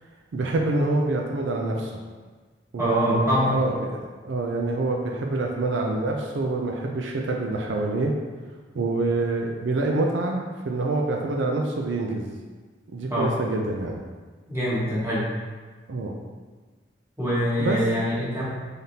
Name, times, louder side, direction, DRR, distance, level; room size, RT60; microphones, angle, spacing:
voice 1, 0.3-1.9 2.7-8.1 8.7-12.3 12.9-14.0 15.9-16.2 17.6-17.8, right 2 dB, 80° right, 1 dB, 0.4 m, -26 dB
voice 2, 2.8-3.6 13.1-13.3 14.5-15.3 17.2-18.5, equal, 15° right, -9 dB, 1.3 m, -24 dB
4.0 x 3.4 x 2.7 m, 1.4 s
head